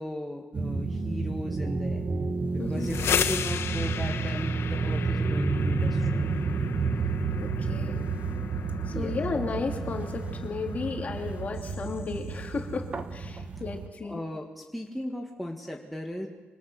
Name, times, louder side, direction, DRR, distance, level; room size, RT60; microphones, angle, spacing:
voice 1, 0.0-2.0 2.5-6.3 8.9-9.2 14.0-16.3, equal, ahead, 0 dB, 1.7 m, -37 dB
sound 1, 0.5-13.9, right 4 dB, 35° right, 1.3 m, -30 dB
sound 2, 2.6-12.4, left 8 dB, 75° left, 1.2 m, -36 dB
voice 2, 2.6-2.9 7.4-8.0 8.9-14.2, left 4 dB, 35° left, 2 dB, 3.2 m, -34 dB
26.5 x 25.0 x 6.5 m, 1.2 s
wide cardioid pair, 160°, 4 cm